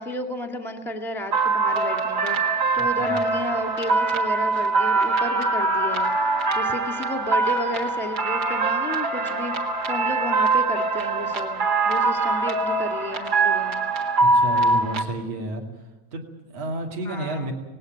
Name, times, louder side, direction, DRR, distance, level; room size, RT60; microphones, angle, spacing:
voice 1, 0.0-13.9 17.0-17.5, left 1 dB, ahead, 4 dB, 1.3 m, -32 dB
sound 1, 1.3-15.0, right 3 dB, 40° right, 1.9 m, -23 dB
voice 2, 2.8-3.3 14.2-15.7 16.1-17.5, right 1 dB, 60° right, 2 dB, 3.6 m, -31 dB
19.0 x 17.0 x 9.2 m, 1.1 s
omnidirectional pair, 3.3 m